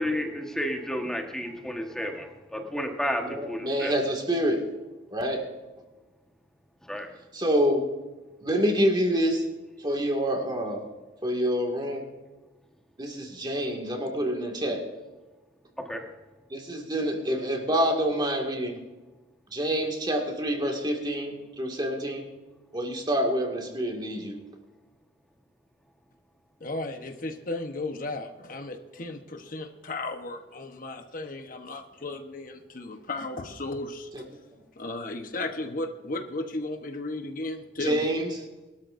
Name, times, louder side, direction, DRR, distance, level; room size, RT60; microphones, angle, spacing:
voice 1, 0.0-3.9 6.9-7.1 15.8-16.0, equal, 5° left, 2 dB, 1.3 m, -31 dB
voice 2, 3.2-4.6 5.1-5.4 7.3-7.9 8.4-9.4 9.8-10.8 11.2-12.1 13.0-14.8 16.5-18.8 19.5-22.3 22.7-24.4 34.1-34.2 37.8-38.3, equal, 25° right, 2 dB, 2.1 m, -27 dB
voice 3, 26.6-34.1 34.8-38.1, left 2 dB, 50° left, 5 dB, 1.1 m, -35 dB
21.5 x 13.0 x 2.6 m, 1.2 s
head